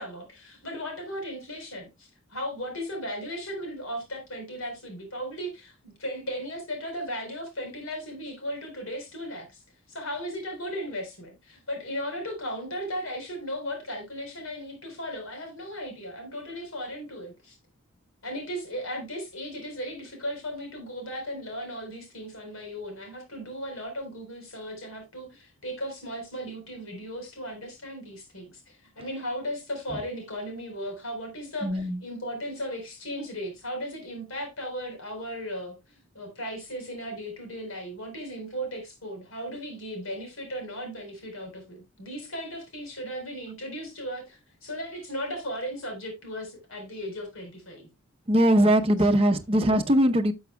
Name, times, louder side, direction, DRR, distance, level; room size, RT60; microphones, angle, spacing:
voice 1, 0.0-9.6 9.9-17.6 18.2-47.9, equal, 80° left, 4.1 m, -36 dB
voice 2, 31.6-32.0 48.3-50.3, right 1 dB, 30° right, 0.8 m, -21 dB
12.0 x 7.2 x 2.2 m
head